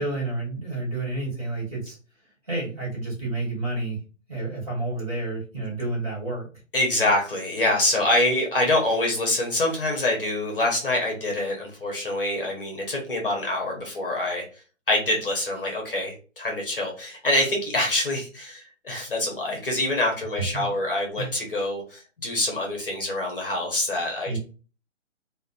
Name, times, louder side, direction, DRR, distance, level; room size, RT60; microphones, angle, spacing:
voice 1, 0.0-2.0 2.5-4.0 4.3-6.5 20.4-20.7 21.2-21.3 24.2-24.4, right 2 dB, 30° right, -5 dB, 1.2 m, -30 dB
voice 2, 6.7-14.4 14.9-24.3, left 1 dB, 45° left, 0 dB, 0.8 m, -25 dB
2.7 x 2.1 x 2.4 m, 0.36 s
hypercardioid pair, 180°, 38 cm